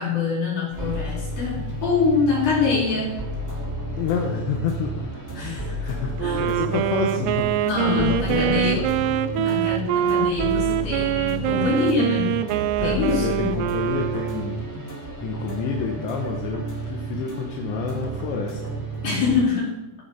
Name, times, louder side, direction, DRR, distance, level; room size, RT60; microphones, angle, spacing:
voice 1, 0.0-3.2 5.4-5.9 6.2-6.5 7.7-8.8 9.3-12.4 12.8-13.5 19.0-19.8, left 5 dB, 45° left, -7 dB, 5.8 m, -25 dB
sound 1, 0.7-19.4, right 2 dB, 5° left, 1.9 m, -31 dB
voice 2, 4.0-8.9 12.8-14.7 15.2-18.6, left 7 dB, 80° left, 1 dB, 3.2 m, -29 dB
Wind instrument woodwind instrument, 6.2-14.8, right 11 dB, 80° right, 2.7 m, -24 dB
15.5 x 7.7 x 4.8 m, 1.0 s
omnidirectional pair, 5.1 m